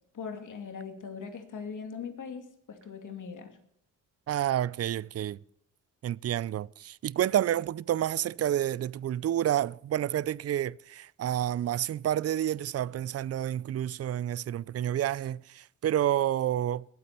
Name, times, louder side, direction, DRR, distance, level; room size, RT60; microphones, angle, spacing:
voice 1, 0.1-3.6, left 6 dB, 70° left, 2.8 m, -40 dB
voice 2, 4.3-5.4 6.0-15.4 15.8-16.9, right 11 dB, 50° right, 0.4 m, -29 dB
21.5 x 8.4 x 4.5 m
cardioid pair, 80°, 32 cm